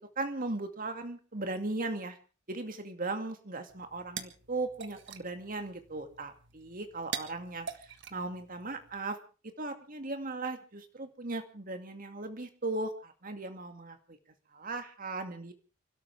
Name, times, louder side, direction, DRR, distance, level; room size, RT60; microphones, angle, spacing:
voice 1, 0.2-2.2 2.5-9.2 9.6-14.2 14.5-15.5, right 2 dB, 40° right, 7 dB, 2.3 m, -37 dB
sound 1, 3.7-9.0, right 7 dB, 60° right, 1.6 m, -45 dB
29.5 x 12.5 x 3.5 m, 0.35 s
head